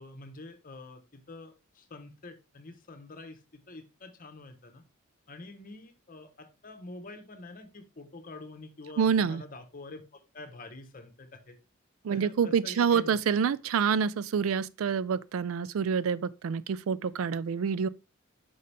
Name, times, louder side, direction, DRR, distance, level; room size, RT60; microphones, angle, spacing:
voice 1, 0.0-4.8 5.3-11.6 12.1-13.2, left 2 dB, 40° left, 0.9 m, -47 dB
voice 2, 9.0-9.4 12.0-17.9, right 6 dB, 70° right, 0.3 m, -27 dB
5.7 x 5.2 x 3.3 m
head